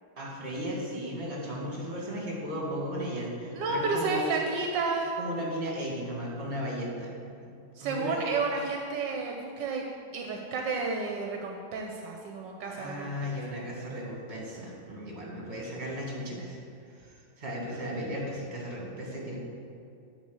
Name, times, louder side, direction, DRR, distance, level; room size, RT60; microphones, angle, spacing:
voice 1, 0.2-4.3 5.2-7.1 7.4-7.5 7.8-8.3 12.7-16.6 17.0-17.1 17.4-19.4, equal, 35° right, -3 dB, 1.9 m, -35 dB
voice 2, 3.5-5.1 7.8-9.9 10.1-13.3, right 4 dB, 80° right, 1 dB, 1.3 m, -31 dB
9.3 x 3.4 x 6.9 m, 2.5 s
omnidirectional pair, 2.0 m